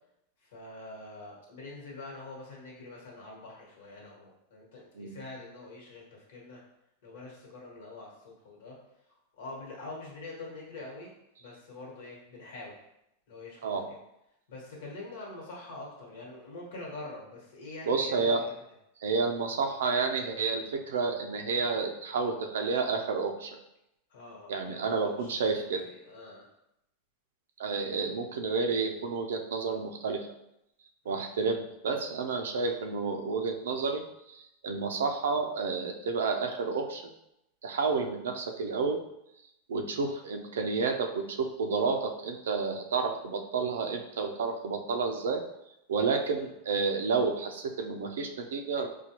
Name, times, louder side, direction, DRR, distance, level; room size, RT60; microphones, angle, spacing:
voice 1, 0.4-6.6 7.0-8.8 9.3-11.1 11.4-12.8 13.3-13.8 14.5-18.5 24.1-26.5 31.0-31.2 46.4-46.5, left 2 dB, 75° left, -2 dB, 1.3 m, -45 dB
voice 2, 17.9-18.4 19.0-23.6 24.5-25.8 27.6-30.3 31.1-37.0 37.6-39.0 39.7-45.4 45.9-48.9, right 4 dB, 90° right, 5 dB, 0.5 m, -30 dB
4.3 x 2.3 x 2.9 m, 0.83 s
supercardioid pair, 130°, 0 cm